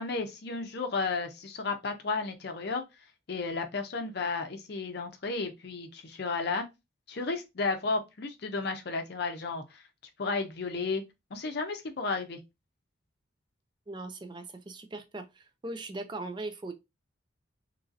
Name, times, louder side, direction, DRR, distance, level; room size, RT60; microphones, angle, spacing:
voice 1, 0.0-2.8 3.3-6.6 7.1-9.8 10.2-11.0 11.3-12.4, left 4 dB, 55° left, 0.5 m, -33 dB
voice 2, 13.9-16.7, right 2 dB, 25° right, 0.4 m, -39 dB
3.0 x 2.6 x 2.4 m
head